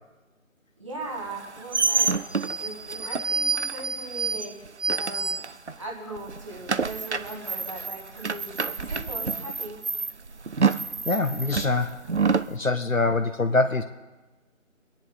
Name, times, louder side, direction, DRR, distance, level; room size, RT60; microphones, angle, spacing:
voice 1, 0.8-2.2 2.6-4.5 4.9-5.4 5.8-9.8, right 2 dB, 25° right, -2 dB, 1.9 m, -39 dB
sound 1, 1.3-5.9 6.2-12.5, right 4 dB, 60° right, 0.6 m, -28 dB
voice 2, 11.1-12.0 12.3-13.8, left 3 dB, 80° left, 7 dB, 1.0 m, -24 dB
25.0 x 10.5 x 4.1 m, 1.2 s
figure-of-eight pair, 165°, 40 cm